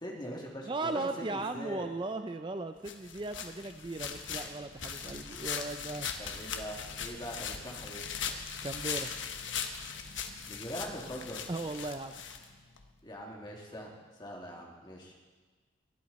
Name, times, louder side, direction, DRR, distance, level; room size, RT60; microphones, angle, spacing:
voice 1, 0.0-1.9 6.2-8.0 10.5-11.4 13.0-15.2, equal, 25° left, -1 dB, 2.4 m, -42 dB
voice 2, 0.6-6.1 8.6-9.1 11.5-12.2, right 2 dB, 25° right, 8 dB, 0.4 m, -37 dB
sound 1, 2.8-12.9, left 7 dB, 90° left, 1.2 m, -39 dB
20.0 x 13.0 x 4.2 m, 1.4 s
head